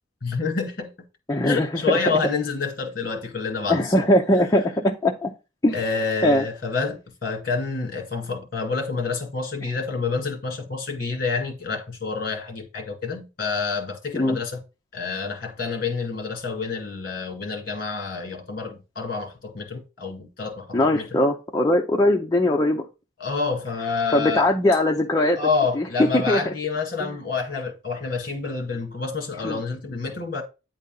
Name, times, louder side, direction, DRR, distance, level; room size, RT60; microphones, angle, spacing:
voice 1, 0.2-0.9 1.4-4.0 5.7-14.6 14.9-21.2 23.2-24.5 25.4-30.4, left 4 dB, 45° left, 1.9 m, -28 dB
voice 2, 1.3-1.7 1.9-2.2 3.7-5.3 5.6-5.8 6.2-6.4 14.1-14.4 20.7-22.8 24.1-25.4 25.8-25.9 26.1-26.5 27.0-27.1 29.4-29.6, left 1 dB, 15° left, 0.5 m, -20 dB
9.3 x 4.0 x 3.8 m
head